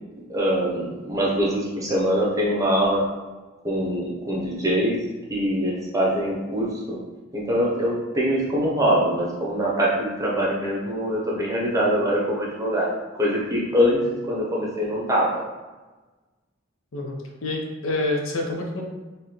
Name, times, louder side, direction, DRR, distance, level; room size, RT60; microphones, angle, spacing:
voice 1, 0.3-3.0 3.6-5.0 5.3-7.0 7.3-15.4, equal, 15° right, -4 dB, 0.9 m, -23 dB
voice 2, 16.9-18.8, left 2 dB, 90° left, 1 dB, 0.7 m, -27 dB
3.8 x 2.7 x 3.2 m, 1.2 s
head